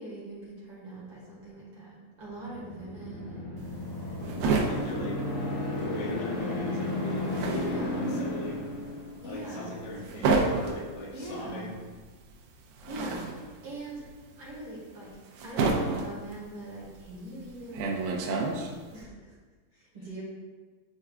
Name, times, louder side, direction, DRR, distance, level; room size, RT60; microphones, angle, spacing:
voice 1, 0.0-3.6 4.0-5.2 7.5-8.1 9.2-9.8 10.1-10.4 11.1-11.7 12.9-13.3 13.6-14.0 14.4-15.1 15.4-18.0 18.9-19.4 19.7-20.2, right 1 dB, 50° right, -7 dB, 2.1 m, -42 dB
sound 1, 2.4-9.4, left 2 dB, 60° left, 2.3 m, -33 dB
sound 2, 3.6-6.1 6.4-19.0, right 3 dB, 90° right, 2.7 m, -31 dB
voice 2, 4.4-8.7 9.2-11.8, left 1 dB, 90° left, -4 dB, 3.3 m, -39 dB
11.0 x 4.5 x 2.4 m, 1.4 s
omnidirectional pair, 4.3 m